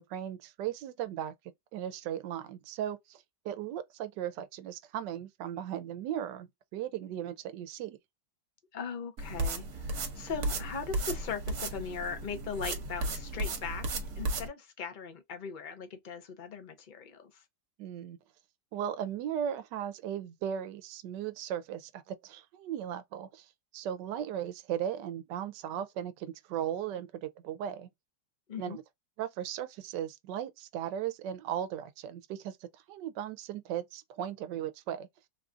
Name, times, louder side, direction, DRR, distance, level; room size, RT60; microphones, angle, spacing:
voice 1, 0.0-1.3 1.7-8.0 17.8-18.2 18.7-23.5 23.7-27.9 28.6-28.8 29.2-35.1, right 10 dB, 85° right, 1.2 m, -37 dB
voice 2, 8.7-17.4 28.5-28.8, left 6 dB, 40° left, 0.7 m, -39 dB
sound 1, 9.2-14.5, right 2 dB, 65° right, 1.4 m, -35 dB
3.6 x 2.4 x 2.4 m
omnidirectional pair, 1.8 m